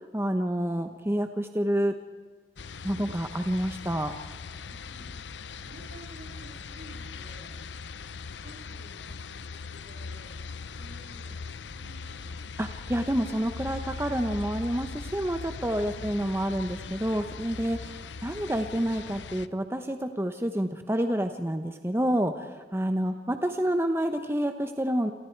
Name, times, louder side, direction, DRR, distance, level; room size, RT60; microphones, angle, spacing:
voice 1, 0.1-1.9 2.8-4.1 12.6-25.1, equal, 15° right, 7 dB, 0.9 m, -28 dB
sound 1, 2.6-19.5, left 4 dB, 75° left, 0.7 m, -40 dB
voice 2, 4.6-7.5 8.4-12.5 15.9-16.1 18.1-18.2 23.0-23.2, right 1 dB, 75° right, 0 dB, 6.9 m, -53 dB
29.0 x 27.0 x 4.6 m, 1.4 s
head